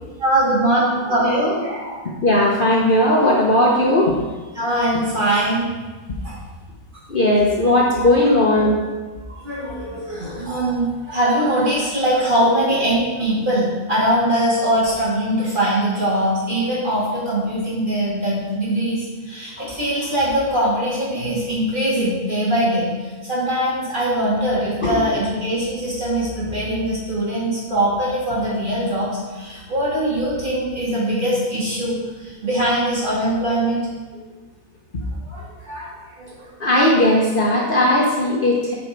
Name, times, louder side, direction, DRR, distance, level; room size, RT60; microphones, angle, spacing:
voice 1, 0.2-2.0 4.5-5.7 6.2-6.4 8.5-8.6 9.3-22.9 23.2-29.1 29.3-33.8 35.3-35.9 36.2-36.4, right 1 dB, 35° right, -8 dB, 3.0 m, -21 dB
voice 2, 2.2-4.1 7.1-8.8 24.8-25.0 34.2-34.3 36.6-38.7, left 1 dB, 40° left, -3 dB, 1.1 m, -17 dB
9.8 x 5.2 x 4.6 m, 1.3 s
omnidirectional pair, 1.6 m